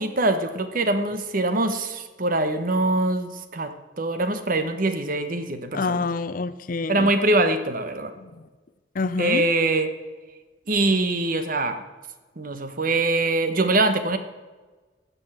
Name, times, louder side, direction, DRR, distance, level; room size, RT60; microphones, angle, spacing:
voice 1, 0.0-3.7 4.0-6.0 6.9-8.1 9.2-9.9 10.7-11.8 12.4-14.2, right 2 dB, 45° right, 9 dB, 1.0 m, -23 dB
voice 2, 5.7-7.1 8.2-8.5 8.9-9.5, left 4 dB, 45° left, 14 dB, 0.5 m, -27 dB
14.5 x 5.4 x 7.5 m, 1.3 s
head